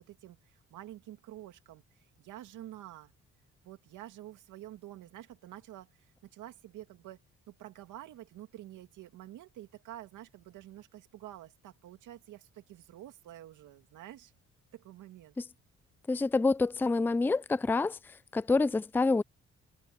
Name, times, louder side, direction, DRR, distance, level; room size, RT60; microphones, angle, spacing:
voice 1, 0.0-1.8 2.2-3.1 3.6-7.2 7.5-14.3 14.7-15.4, right 13 dB, 85° right, 2.5 m, -49 dB
voice 2, 16.1-18.0 18.3-19.2, left 3 dB, 5° left, 0.4 m, -27 dB
cardioid pair, 90°, 30 cm